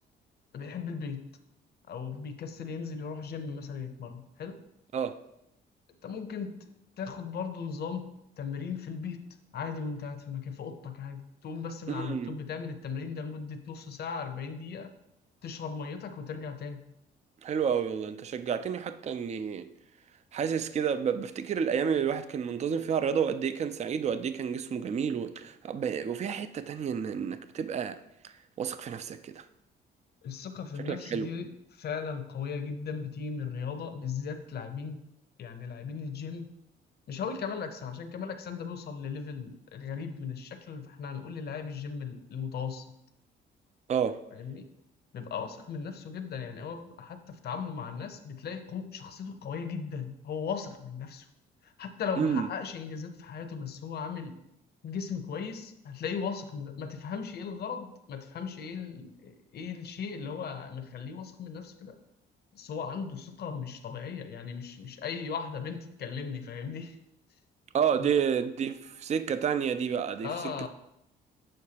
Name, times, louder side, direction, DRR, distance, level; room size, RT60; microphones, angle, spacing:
voice 1, 0.5-1.2 1.9-4.6 6.0-6.7 7.0-8.1 8.4-9.2 9.5-14.9 15.4-16.8 30.2-35.0 35.4-36.5 37.1-42.9 44.3-44.7 45.1-51.3 51.6-54.4 54.8-62.0 62.5-67.0 68.0-68.1 70.2-70.7, left 6 dB, 55° left, 0.7 m, -37 dB
voice 2, 11.9-12.3 17.4-19.7 20.3-28.0 28.6-29.4 30.9-31.3 43.9-44.2 52.2-52.5 67.7-70.3, right 7 dB, 35° right, 0.4 m, -30 dB
6.5 x 6.4 x 2.8 m
cardioid pair, 90°, 20 cm